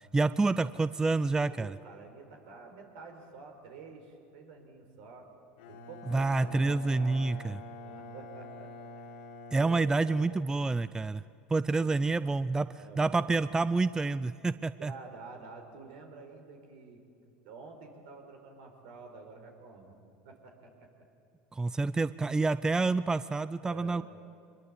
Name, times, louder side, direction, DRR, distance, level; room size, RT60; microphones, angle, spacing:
voice 1, 0.1-1.8 6.1-7.6 9.5-11.2 11.5-12.7 13.0-14.9 21.5-24.0, right 3 dB, 15° right, 16 dB, 0.5 m, -28 dB
voice 2, 1.5-5.3 5.7-7.3 7.7-9.2 9.6-10.2 11.7-12.3 12.8-13.5 14.8-19.9 20.2-20.9 23.6-24.0, right 4 dB, 70° right, 4 dB, 4.6 m, -49 dB
Bowed string instrument, 5.6-11.1, left 2 dB, 80° left, 2.8 m, -47 dB
24.5 x 21.5 x 8.4 m, 2.6 s
hypercardioid pair, 95°, 5 cm